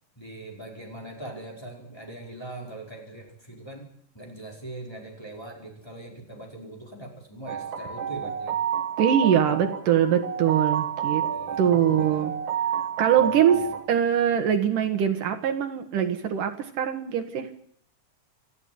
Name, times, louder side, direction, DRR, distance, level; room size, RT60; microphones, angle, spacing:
voice 1, 0.1-3.9 4.1-8.5 11.3-12.3 13.2-13.6, right 2 dB, 5° left, -1 dB, 4.9 m, -41 dB
sound 1, 7.5-13.9, right 8 dB, 55° right, 1.4 m, -29 dB
voice 2, 9.0-11.3 11.6-12.3 13.0-17.5, right 9 dB, 70° right, 8 dB, 3.0 m, -23 dB
27.5 x 14.0 x 9.5 m, 0.68 s
omnidirectional pair, 3.9 m